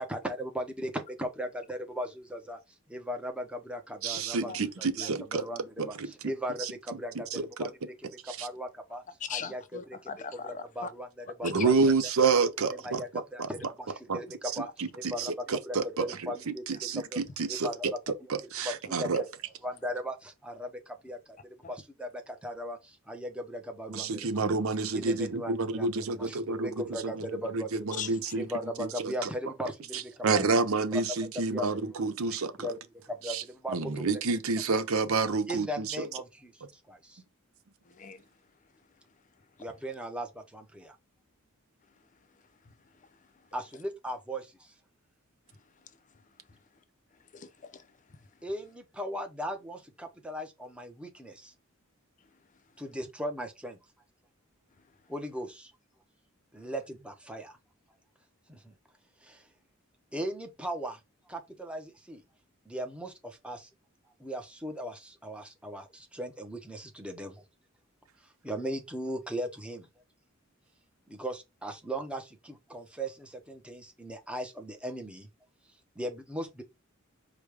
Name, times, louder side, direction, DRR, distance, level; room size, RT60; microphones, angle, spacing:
voice 1, 0.0-2.6 2.9-8.0 8.2-9.0 9.3-9.6 9.9-10.1 10.4-11.9 12.7-15.3 15.7-17.2 17.5-17.9 18.6-19.3 19.6-21.4 21.7-24.4 24.9-28.0 28.3-30.4 30.9-31.0 31.5-32.0 32.6-32.8 33.1-34.1 35.5-36.6 36.9-37.2 39.6-41.0 43.5-44.7 48.4-51.5 52.8-53.8 55.1-55.7 56.5-57.6 58.5-58.7 59.2-59.4 60.1-61.0 61.3-62.2 62.7-63.7 64.2-67.4 68.4-69.9 71.1-75.3 76.0-76.6, equal, 5° right, 0.7 m, -38 dB
voice 2, 4.0-5.4 5.8-6.1 6.6-6.7 7.3-7.7 8.3-8.5 11.4-13.0 13.4-13.5 14.1-14.2 14.5-16.0 16.7-19.2 23.9-26.7 27.0-27.2 27.5-28.4 28.8-29.3 29.9-32.7 33.3-33.4 33.7-36.1, right 4 dB, 70° right, 0.6 m, -29 dB
voice 3, 9.2-10.9 11.5-11.7 21.6-21.7 27.9-28.3 37.9-38.2 47.3-47.9, left 7 dB, 35° left, 0.5 m, -40 dB
5.0 x 2.2 x 4.7 m
head